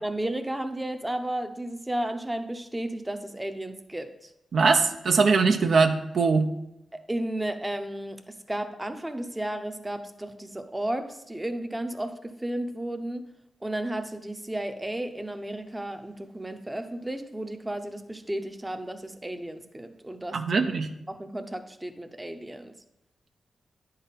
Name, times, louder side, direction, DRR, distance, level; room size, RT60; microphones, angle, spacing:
voice 1, 0.0-4.3 6.9-13.2 13.6-20.7 21.1-22.7, right 1 dB, 15° right, 7 dB, 0.6 m, -33 dB
voice 2, 4.5-6.5 20.3-20.9, right 4 dB, 70° right, 7 dB, 0.5 m, -21 dB
9.9 x 4.0 x 4.0 m, 0.87 s
cardioid pair, 75°, 0 cm